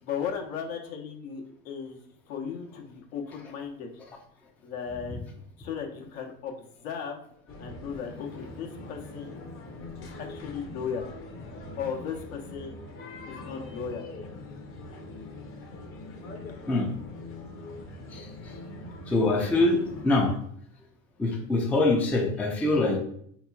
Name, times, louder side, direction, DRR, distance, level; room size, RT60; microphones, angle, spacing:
voice 1, 0.0-2.0 2.3-3.9 4.6-5.3 5.6-7.2 7.6-9.3 10.2-11.1 11.8-12.8 13.3-14.1, left 7 dB, 80° left, 1 dB, 1.0 m, -36 dB
sound 1, 7.5-20.4, left 2 dB, 35° left, 0.6 m, -42 dB
voice 2, 19.1-20.3 21.2-23.0, left 2 dB, 5° left, 0 dB, 0.3 m, -24 dB
4.2 x 2.9 x 2.3 m, 0.66 s
supercardioid pair, 110°, 40 cm